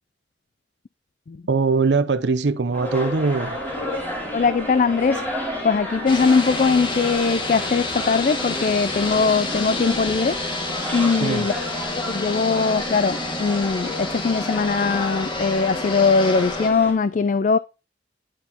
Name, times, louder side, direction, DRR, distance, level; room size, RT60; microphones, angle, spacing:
voice 1, 1.5-3.6 11.1-11.5, right 4 dB, 80° right, 0.7 m, -21 dB
sound 1, 2.7-16.9, left 1 dB, 10° left, 3.1 m, -32 dB
voice 2, 4.3-5.2 5.6-10.4 10.9-11.5 12.1-17.6, left 4 dB, 45° left, 0.3 m, -20 dB
sound 2, 6.1-16.7, left 2 dB, 25° left, 1.5 m, -29 dB
10.0 x 5.7 x 2.9 m
head